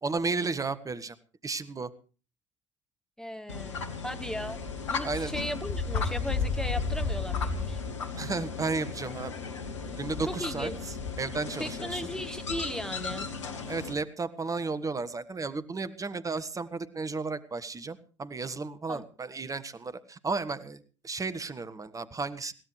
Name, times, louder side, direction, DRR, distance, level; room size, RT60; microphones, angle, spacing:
voice 1, 0.0-1.1 1.4-1.9 5.0-5.3 8.1-9.3 10.0-10.7 11.2-12.0 13.7-22.5, right 4 dB, 20° right, 12 dB, 1.5 m, -33 dB
voice 2, 3.2-4.6 4.9-7.8 10.2-10.7 11.6-13.3 18.9-19.0, equal, 5° left, 9 dB, 1.1 m, -36 dB
sound 1, 3.5-13.9, left 4 dB, 75° left, 1.7 m, -34 dB
21.5 x 17.0 x 3.3 m, 0.36 s
figure-of-eight pair, 60°, 16 cm